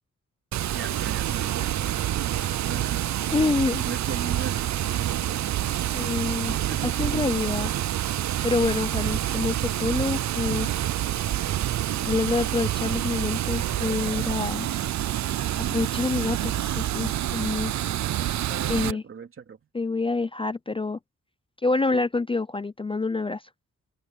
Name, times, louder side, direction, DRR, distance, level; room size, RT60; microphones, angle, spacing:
Water, 0.5-18.9, right 12 dB, 65° right, 0.5 m, -27 dB
voice 1, 0.7-3.1 3.8-5.9 6.5-7.0 18.5-19.6, right 6 dB, 45° right, 2.7 m, -39 dB
voice 2, 3.3-3.8 5.9-6.6 7.0-7.7 8.4-10.7 12.0-14.7 15.7-17.7 18.7-19.0 19.7-21.0 21.6-23.4, left 3 dB, 20° left, 0.4 m, -27 dB
wide cardioid pair, 155°, 30 cm